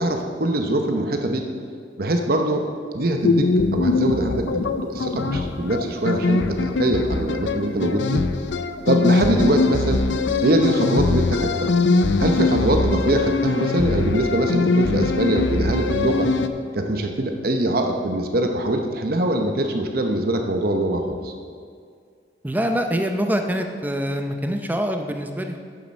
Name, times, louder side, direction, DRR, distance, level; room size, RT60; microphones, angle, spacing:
voice 1, 0.0-1.4 2.0-2.7 2.9-8.2 8.9-10.0 10.4-11.7 12.2-16.3 16.7-21.3, right 1 dB, 55° right, 4 dB, 0.8 m, -23 dB
sound 1, 3.2-16.5, left 3 dB, 85° left, 0.6 m, -22 dB
voice 2, 22.4-25.6, equal, 10° right, 5 dB, 0.6 m, -25 dB
9.7 x 7.5 x 6.3 m, 2.2 s
head